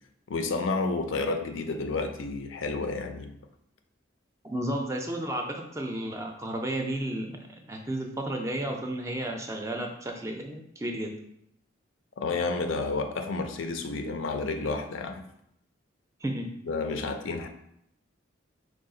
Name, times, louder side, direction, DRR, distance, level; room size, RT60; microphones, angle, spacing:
voice 1, 0.3-3.3 12.2-15.2 16.7-17.5, left 3 dB, 80° left, 7 dB, 0.5 m, -30 dB
voice 2, 4.4-7.4 7.6-11.1 16.2-16.5, right 1 dB, 15° right, 3 dB, 0.4 m, -32 dB
4.7 x 2.3 x 3.8 m, 0.75 s
head